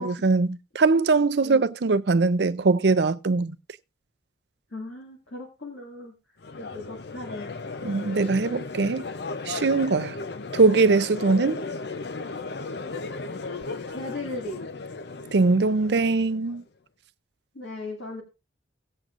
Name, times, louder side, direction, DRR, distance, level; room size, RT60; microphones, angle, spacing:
voice 1, 0.0-3.6 7.8-9.1 9.5-10.2 10.5-11.6 15.3-16.6, right 3 dB, 60° right, 0.5 m, -21 dB
voice 2, 4.7-6.1 6.6-7.5 13.9-14.7 17.5-18.2, left 2 dB, 75° left, 2.1 m, -37 dB
Crowd, 6.4-16.6, left 3 dB, 60° left, 0.6 m, -36 dB
17.5 x 7.7 x 2.5 m
head